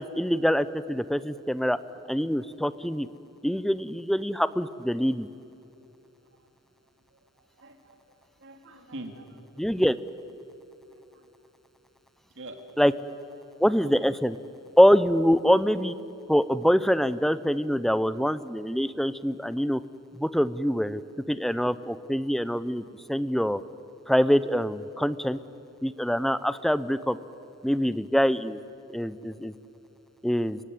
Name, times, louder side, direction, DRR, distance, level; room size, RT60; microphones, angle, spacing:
voice 1, 0.0-1.8 2.1-3.1 3.4-5.3 9.6-9.9 12.8-12.9 13.6-14.4 14.8-15.9 16.3-19.8 20.2-21.0 21.3-22.8 23.1-23.6 24.1-25.4 25.8-27.2 27.6-28.6 28.9-29.5 30.2-30.6, equal, ahead, 15 dB, 0.6 m, -24 dB
voice 2, 7.6-8.0 8.4-9.8 11.1-11.2 12.4-12.6, right 1 dB, 60° right, 5 dB, 2.6 m, -44 dB
29.5 x 17.0 x 9.5 m, 3.0 s
head